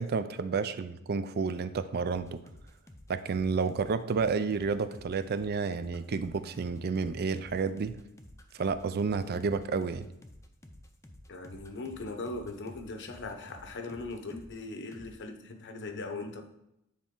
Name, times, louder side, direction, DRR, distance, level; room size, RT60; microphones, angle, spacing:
voice 1, 0.0-2.4 3.1-8.0 8.5-10.1, right 5 dB, 45° right, 13 dB, 0.4 m, -30 dB
sound 1, 2.1-14.6 14.9-15.1, left 1 dB, 15° left, 0.6 m, -52 dB
voice 2, 11.3-16.4, left 3 dB, 55° left, 5 dB, 0.9 m, -39 dB
9.6 x 4.2 x 3.8 m, 0.83 s
head